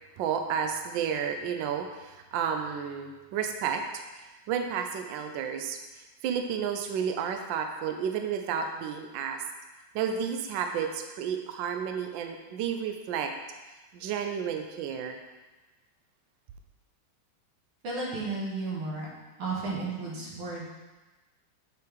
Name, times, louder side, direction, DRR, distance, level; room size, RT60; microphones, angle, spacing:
voice 1, 0.2-5.8 6.2-9.4 9.9-13.3 13.9-15.2, right 7 dB, 75° right, 5 dB, 1.2 m, -31 dB
voice 2, 17.8-19.1 19.4-20.7, right 3 dB, 90° right, -5 dB, 2.4 m, -33 dB
7.7 x 4.8 x 3.5 m, 1.2 s
omnidirectional pair, 2.3 m